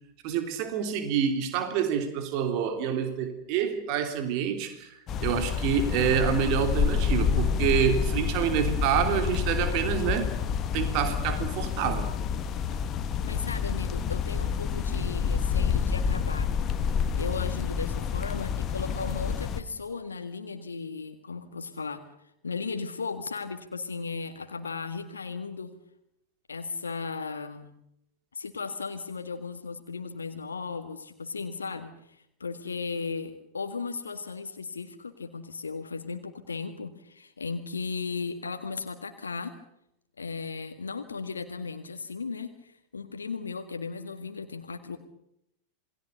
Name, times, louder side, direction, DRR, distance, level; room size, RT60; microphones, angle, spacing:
voice 1, 0.2-10.3 10.7-12.1, right 8 dB, 45° right, 7 dB, 3.3 m, -27 dB
sound 1, 5.1-19.6, left 7 dB, 30° left, 1.6 m, -28 dB
voice 2, 13.2-16.5 17.2-22.0 22.4-25.7 26.5-27.7 28.3-39.5 40.2-45.0, left 4 dB, 75° left, 7 dB, 1.8 m, -36 dB
28.0 x 20.5 x 6.7 m, 0.78 s
figure-of-eight pair, 90°, 0 cm